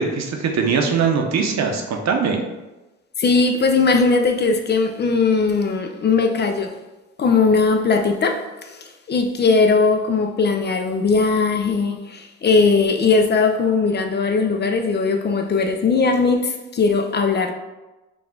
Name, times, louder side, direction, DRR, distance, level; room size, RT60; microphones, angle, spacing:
voice 1, 0.0-2.4, right 5 dB, 60° right, 3 dB, 0.8 m, -21 dB
voice 2, 3.2-6.8 7.2-17.5, left 4 dB, 35° left, 5 dB, 0.5 m, -19 dB
4.9 x 2.4 x 3.7 m, 1.1 s
cardioid pair, 90°, 30 cm